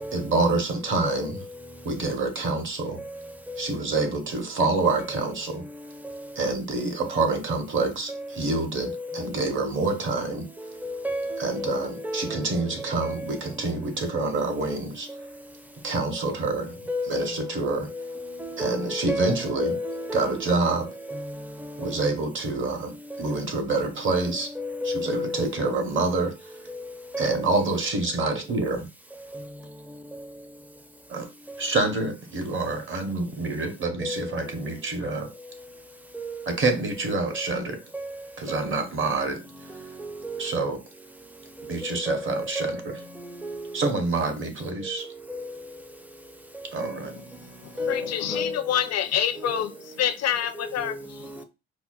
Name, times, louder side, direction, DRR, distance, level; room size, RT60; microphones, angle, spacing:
voice 1, 0.1-1.4 1.8-3.0 3.6-5.6 6.4-10.5 11.4-15.1 15.8-16.8 17.1-17.9 18.6-19.7 20.1-20.9 21.8-24.5 24.8-26.3 27.2-28.9 31.1-31.3 31.6-35.3 36.5-37.8 38.4-39.4 40.4-40.8 41.7-42.7 43.7-45.0 46.7-47.1, right 3 dB, 40° right, 0.8 m, -27 dB
voice 2, 8.8-9.3 10.8-12.7 13.0-13.4 16.9-17.5 17.9-18.0 18.4-20.6 21.1-21.4 21.8-21.9 23.1-23.2 24.1-24.2 24.6-25.5 27.1-27.4 34.0-34.3 36.1-36.4 37.9-38.1 38.5-38.7 40.2-40.5 42.1-42.8 43.4-43.5 46.8-46.9 47.8-48.6 49.4-49.6, left 1 dB, 5° right, 0.4 m, -32 dB
voice 3, 47.4-51.4, left 10 dB, 55° left, 0.5 m, -28 dB
4.2 x 2.0 x 2.3 m
cardioid pair, 90°, 30 cm